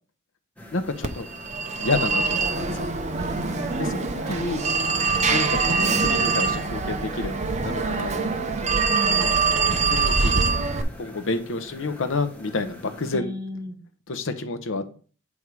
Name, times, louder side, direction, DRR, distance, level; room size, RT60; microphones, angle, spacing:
sound 1, 0.6-13.2, left 1 dB, 5° left, 1.1 m, -44 dB
voice 1, 0.7-1.3 1.8-3.0 3.8-4.6 5.3-8.3 8.6-8.8 9.2-10.4 11.0-13.3 14.1-14.9, left 3 dB, 65° left, 10 dB, 0.8 m, -29 dB
Telephone, 1.0-10.8, right 4 dB, 35° right, 0.7 m, -24 dB
voice 2, 3.2-5.6 8.9-9.3 9.7-10.0 13.1-13.8, left 1 dB, 15° right, 2 dB, 1.2 m, -36 dB
8.4 x 3.6 x 4.7 m, 0.41 s
head